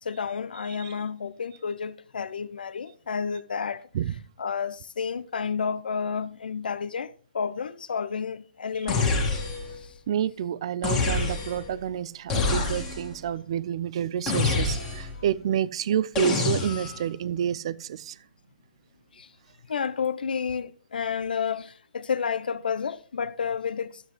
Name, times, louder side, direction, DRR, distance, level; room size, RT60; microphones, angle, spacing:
voice 1, 0.0-3.9 4.4-9.1 9.7-9.9 15.2-15.3 19.1-19.3 19.7-24.0, left 6 dB, 75° left, 0.7 m, -31 dB
sound 1, 8.9-9.8 10.8-11.7 12.3-13.2 14.3-15.2 16.2-17.1, left 3 dB, 10° left, 1.8 m, -26 dB
voice 2, 10.1-18.2, right 10 dB, 35° right, 0.4 m, -29 dB
12.5 x 7.7 x 3.1 m
hypercardioid pair, 165°, 5 cm